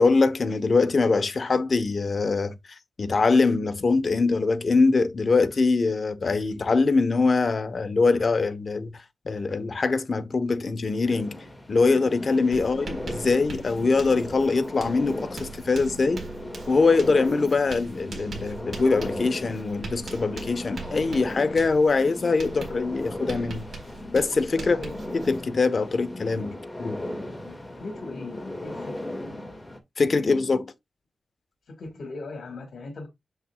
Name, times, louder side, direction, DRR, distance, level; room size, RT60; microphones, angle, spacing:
voice 1, 0.0-8.9 9.2-11.4 11.7-16.3 16.7-23.6 24.1-24.8 25.1-27.0 30.0-30.6, left 4 dB, 45° left, 1.0 m, -23 dB
sound 1, 10.9-29.8, left 1 dB, 15° left, 2.0 m, -37 dB
Writing, 11.9-12.1 12.3-25.5, right 4 dB, 55° right, 4.4 m, -42 dB
voice 2, 26.8-29.6 30.1-30.7 31.7-33.1, left 2 dB, 70° left, 1.9 m, -40 dB
7.9 x 7.3 x 2.3 m
wide cardioid pair, 115°, 0 cm